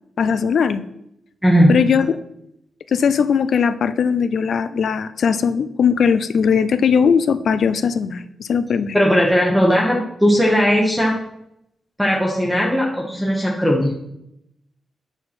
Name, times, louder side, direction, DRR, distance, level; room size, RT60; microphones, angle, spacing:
voice 1, 0.2-0.8 1.7-2.2 2.9-9.0, left 6 dB, 65° left, 12 dB, 0.4 m, -19 dB
voice 2, 1.4-1.7 8.9-11.1 12.0-13.9, equal, ahead, -3 dB, 1.0 m, -17 dB
8.6 x 4.5 x 4.3 m, 0.79 s
wide cardioid pair, 145°, 0 cm